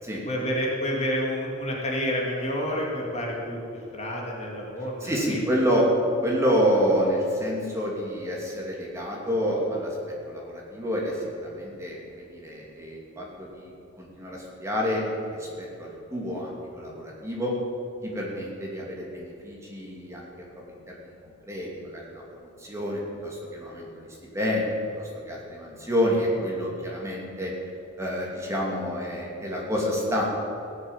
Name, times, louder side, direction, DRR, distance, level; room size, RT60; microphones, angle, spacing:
voice 1, 0.3-3.6 3.9-5.4, equal, 35° left, -2 dB, 2.3 m, -29 dB
voice 2, 5.0-5.9 6.2-10.0 10.2-13.7 14.0-15.0 15.4-17.5 18.0-21.1 21.5-22.2 22.6-24.1 24.3-27.5 28.0-30.2, equal, 15° right, -3 dB, 2.7 m, -28 dB
16.0 x 7.4 x 9.0 m, 2.7 s
head